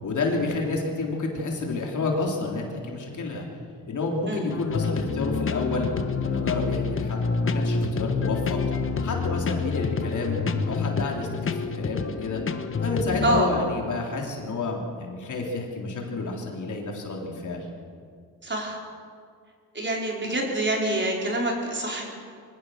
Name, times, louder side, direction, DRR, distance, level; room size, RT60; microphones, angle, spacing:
voice 1, 0.0-3.5 3.9-5.9 6.2-8.6 9.0-10.4 10.7-12.4 12.8-17.7, left 3 dB, 45° left, 0 dB, 3.8 m, -30 dB
sound 1, 4.5-13.4, left 4 dB, 30° left, 1.3 m, -27 dB
voice 2, 18.4-18.8 19.7-22.1, right 2 dB, 30° right, -1 dB, 4.9 m, -26 dB
24.0 x 16.5 x 6.7 m, 2.2 s
cardioid pair, 105°, 40 cm